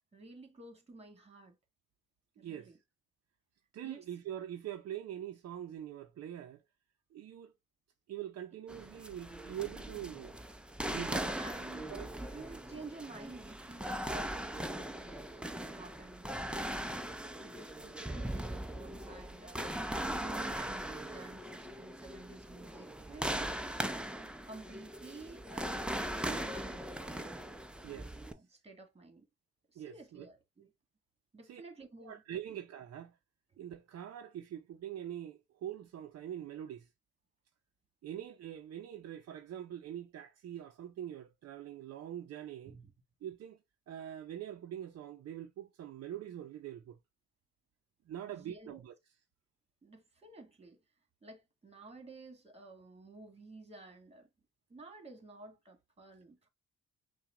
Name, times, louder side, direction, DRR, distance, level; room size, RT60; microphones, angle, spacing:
voice 1, 0.1-1.6 2.4-2.8 3.8-4.0 9.8-10.0 10.6-17.0 17.4-19.7 20.0-23.5 24.5-25.8 26.1-27.4 28.3-29.3 29.7-30.7 31.3-32.2 32.5-32.6 42.7-42.9 48.3-48.8 49.8-50.8 51.2-54.3 54.7-56.5, right 3 dB, 20° right, 1.7 m, -52 dB
voice 2, 2.4-2.8 3.7-6.6 7.1-7.5 8.1-10.4 10.9-11.3 11.9-12.1 27.8-28.2 29.8-30.3 31.4-31.6 32.0-33.2 33.6-36.9 38.0-42.7 43.2-43.6 43.9-47.0 48.1-48.9, right 11 dB, 55° right, 0.6 m, -44 dB
sound 1, 8.7-28.3, right 1 dB, 5° right, 0.5 m, -40 dB
5.7 x 2.3 x 3.6 m
cardioid pair, 90°, 30 cm